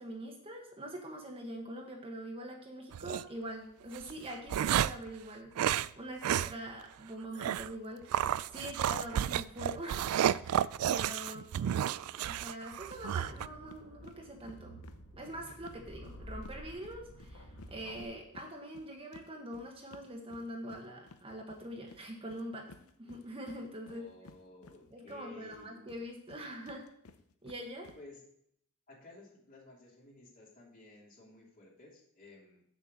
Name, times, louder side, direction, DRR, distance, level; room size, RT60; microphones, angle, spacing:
voice 1, 0.0-11.4 12.3-14.8 15.1-22.7 23.0-24.1 24.9-26.9 27.4-27.9, right 1 dB, 25° right, 1 dB, 1.2 m, -44 dB
sound 1, 2.9-3.2 3.9-5.1 5.6-5.9 6.2-6.5 6.8-6.9 7.4-7.7 8.1-13.5, right 10 dB, 85° right, 0.3 m, -31 dB
voice 2, 11.3-12.2 23.8-25.8 28.0-28.2 28.9-32.6, left 2 dB, 40° left, -3 dB, 2.9 m, -55 dB
sound 2, 12.8-18.0, equal, 70° left, 1.7 m, -50 dB
sound 3, 12.9-13.0 13.3-13.4 13.7-16.6 16.8-25.2 25.5-28.0, left 3 dB, 85° left, 0.7 m, -56 dB
6.9 x 5.9 x 7.5 m, 0.69 s
head